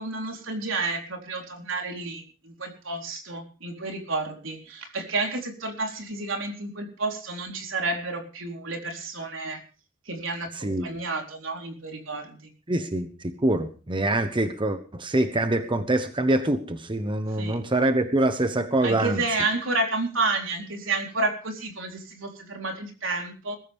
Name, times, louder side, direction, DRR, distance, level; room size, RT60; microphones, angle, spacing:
voice 1, 0.0-9.6 10.1-12.5 17.4-17.6 18.8-23.6, right 3 dB, 80° right, 3 dB, 4.0 m, -30 dB
voice 2, 10.5-11.0 12.7-19.2, right 1 dB, 25° right, 9 dB, 1.1 m, -25 dB
21.5 x 14.0 x 3.6 m, 0.37 s
head